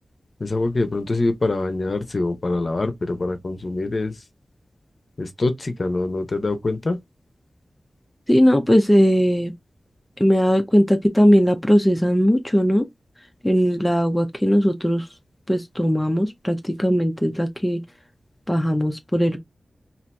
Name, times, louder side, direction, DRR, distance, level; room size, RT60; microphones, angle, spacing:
voice 1, 0.4-4.2 5.2-7.0, left 2 dB, 45° left, 0.8 m, -24 dB
voice 2, 8.3-9.5 10.2-12.9 13.4-15.1 15.5-17.8 18.5-19.4, equal, 10° left, 0.6 m, -19 dB
2.8 x 2.5 x 3.3 m
wide cardioid pair, 90°, 0 cm